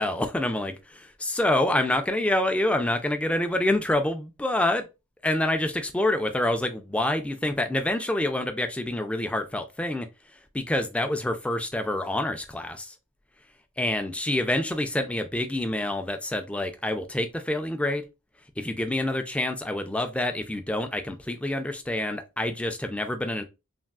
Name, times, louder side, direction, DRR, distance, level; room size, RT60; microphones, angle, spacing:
voice 1, 0.0-4.9 5.2-10.1 10.5-12.9 13.8-18.0 18.6-23.4, left 1 dB, 5° left, 0.3 m, -27 dB
3.4 x 2.3 x 2.3 m
head